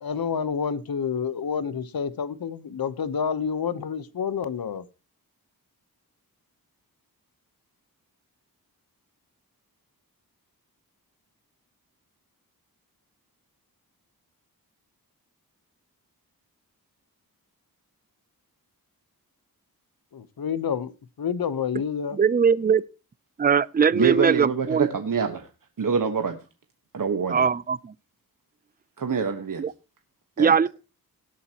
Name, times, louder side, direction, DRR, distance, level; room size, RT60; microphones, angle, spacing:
voice 1, 0.0-4.8 20.1-20.9 21.2-22.2, left 7 dB, 70° left, 1.1 m, -28 dB
voice 2, 22.1-22.8 23.4-24.9 27.3-27.9 29.6-29.7 30.4-30.7, right 6 dB, 25° right, 0.5 m, -21 dB
voice 3, 23.9-25.5 25.8-26.4 26.9-27.5 29.0-29.7 30.4-30.7, right 6 dB, 60° right, 1.4 m, -25 dB
18.0 x 8.5 x 3.0 m
wide cardioid pair, 80°, 37 cm